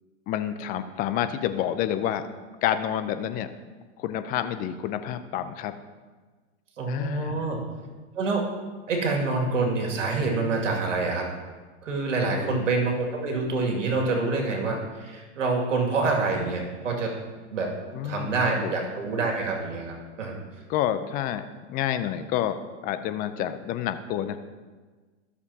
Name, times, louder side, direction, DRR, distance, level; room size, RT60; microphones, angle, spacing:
voice 1, 0.3-2.2 2.6-3.5 4.0-5.7 6.9-7.5 12.2-12.7 17.9-18.4 18.6-18.9 20.7-22.6 22.8-24.4, left 11 dB, 25° left, 11 dB, 0.5 m, -29 dB
voice 2, 6.8-7.6 8.1-8.4 8.9-11.2 11.8-17.1 17.5-17.7 18.0-20.4, right 3 dB, 85° right, 0 dB, 2.3 m, -26 dB
13.5 x 6.8 x 2.8 m, 1.4 s
hypercardioid pair, 125°, 37 cm